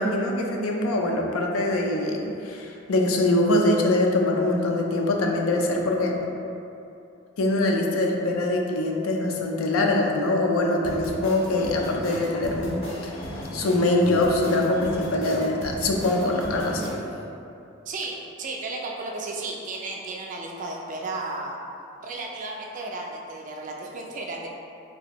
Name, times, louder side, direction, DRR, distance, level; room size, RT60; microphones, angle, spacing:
voice 1, 0.0-6.2 7.4-13.2 13.5-16.9, left 2 dB, 80° left, 1 dB, 0.4 m, -23 dB
sound 1, 10.8-16.9, equal, 65° left, 0.8 m, -35 dB
voice 2, 17.9-21.6 22.0-24.5, right 2 dB, 35° right, -1 dB, 0.3 m, -34 dB
3.3 x 2.5 x 2.9 m, 2.8 s
head